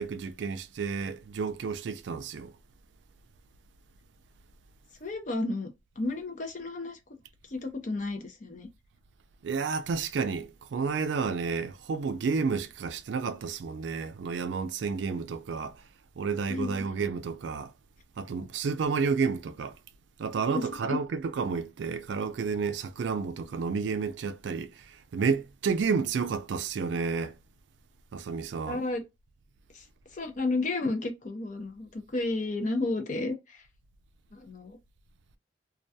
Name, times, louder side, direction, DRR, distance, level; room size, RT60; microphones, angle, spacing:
voice 1, 0.0-2.5 9.4-15.8 16.2-17.7 18.2-19.7 20.2-27.3 28.1-28.8, right 5 dB, 80° right, 0.4 m, -31 dB
voice 2, 5.0-5.7 6.0-7.0 7.5-8.7 16.5-16.8 20.5-21.0 28.7-29.0 29.7-29.9 30.1-33.6 34.3-34.8, left 2 dB, 45° left, 0.5 m, -32 dB
2.3 x 2.2 x 2.6 m
head